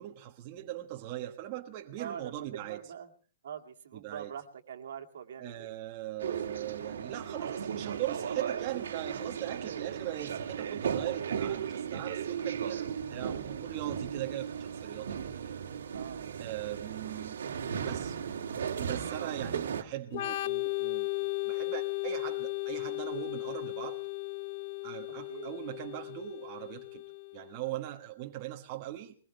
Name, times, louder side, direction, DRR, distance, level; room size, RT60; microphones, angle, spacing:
voice 1, 0.0-2.8 3.9-4.3 5.4-15.2 15.4-15.6 16.4-17.4 17.8-18.2 18.8-24.0 24.8-27.0 27.3-29.2, right 14 dB, 25° right, 1.3 m, -40 dB
voice 2, 2.0-3.1 3.4-5.7 9.6-9.9 15.9-16.3 19.2-19.7 25.3-25.5, right 8 dB, 60° right, 2.1 m, -44 dB
sound 1, 6.2-19.8, right 7 dB, 80° right, 2.2 m, -36 dB
Organ, 20.1-27.6, left 21 dB, 40° left, 0.7 m, -36 dB
22.0 x 20.5 x 3.3 m
hypercardioid pair, 180°, 0 cm